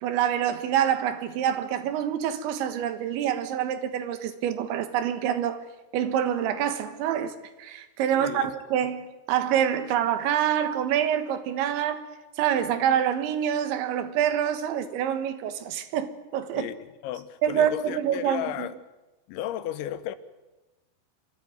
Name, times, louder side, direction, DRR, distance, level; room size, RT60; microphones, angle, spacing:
voice 1, 0.0-5.6 5.9-12.0 12.4-16.7 17.4-18.7, right 9 dB, 85° right, 3.7 m, -26 dB
voice 2, 8.1-8.6 16.5-16.8 17.0-18.8 19.3-20.2, left 12 dB, 90° left, 3.4 m, -34 dB
27.0 x 14.0 x 9.4 m
omnidirectional pair, 5.2 m